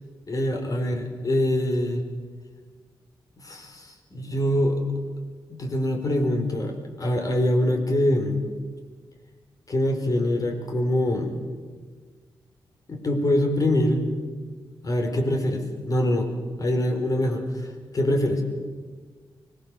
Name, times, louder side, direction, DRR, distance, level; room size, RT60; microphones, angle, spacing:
voice 1, 0.3-2.0 3.4-4.8 5.5-8.4 9.7-11.3 12.9-14.0 14.8-16.3 16.6-17.7 17.9-18.4, left 1 dB, 40° left, 4 dB, 4.6 m, -24 dB
24.5 x 20.0 x 7.1 m, 1.5 s
cardioid pair, 85°, 9 cm